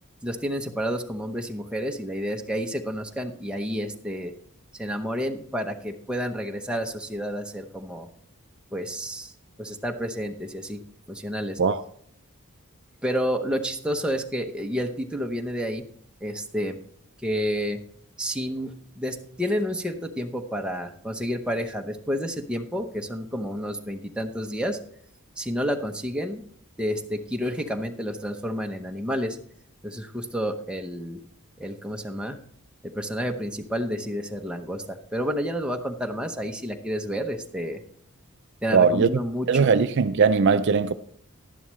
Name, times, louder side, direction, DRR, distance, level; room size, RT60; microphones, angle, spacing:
voice 1, 0.2-4.3 4.7-8.1 8.7-9.3 9.6-10.8 11.1-11.6 13.0-15.9 16.2-16.8 17.2-17.8 18.2-24.8 25.4-26.4 26.8-29.4 29.8-31.2 31.6-32.4 32.8-37.8 38.6-39.7, equal, 5° right, 0.8 m, -30 dB
voice 2, 38.7-39.1 39.5-40.9, right 5 dB, 50° right, 0.4 m, -19 dB
11.0 x 11.0 x 3.1 m
head